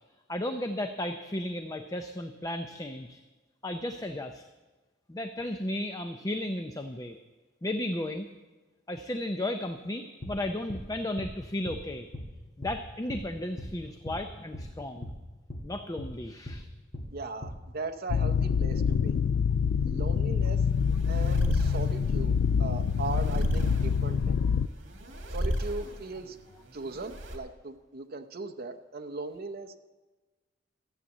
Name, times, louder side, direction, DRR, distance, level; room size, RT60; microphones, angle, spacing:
voice 1, 0.3-3.2 3.6-4.4 5.1-7.2 7.6-8.3 8.9-12.1 12.6-15.1 15.6-16.7, left 1 dB, 20° left, 6 dB, 0.6 m, -34 dB
sound 1, 10.2-10.4 10.7-10.9 11.2-11.3 11.7-11.8 12.1-12.3 12.6-12.8 13.1-13.3 13.6-13.7 14.0-14.2 14.5-14.7 15.0-15.2 15.5-15.7 16.0-16.1 16.5-16.6 16.9-17.1 17.4-17.6, left 1 dB, 40° left, 1.4 m, -39 dB
voice 2, 17.1-19.2 19.8-20.6 21.1-24.4 25.3-26.4 26.7-29.8, right 3 dB, 50° right, 6 dB, 0.8 m, -38 dB
sound 2, 18.1-24.7, left 6 dB, 70° left, 0.3 m, -26 dB
sound 3, 20.4-27.4, equal, 70° right, 2.0 m, -35 dB
14.0 x 8.2 x 7.3 m, 1.2 s
head